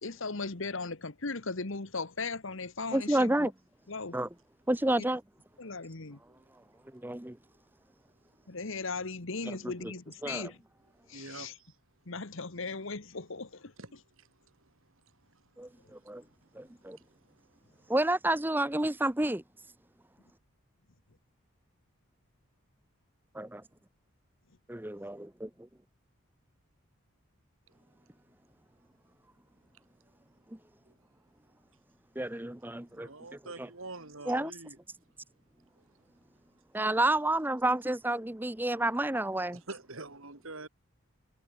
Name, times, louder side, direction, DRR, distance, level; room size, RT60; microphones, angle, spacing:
voice 1, 0.0-3.5 3.9-4.2 5.0-5.1 5.6-6.2 8.5-10.6 11.1-11.5 12.1-13.7, left 3 dB, 65° left, 1.4 m, -37 dB
voice 2, 2.9-3.5 4.1-4.3 4.7-5.2 6.9-7.4 9.8-9.9 10.2-10.5 15.6-16.2 16.5-17.0 17.9-19.4 23.3-23.6 24.7-25.5 32.2-33.7 34.3-34.5 36.7-39.6, right 1 dB, 10° right, 0.7 m, -30 dB
voice 3, 11.1-11.7 13.8-13.9 14.2-14.3 32.9-34.8 39.7-40.7, right 3 dB, 70° right, 3.2 m, -45 dB
head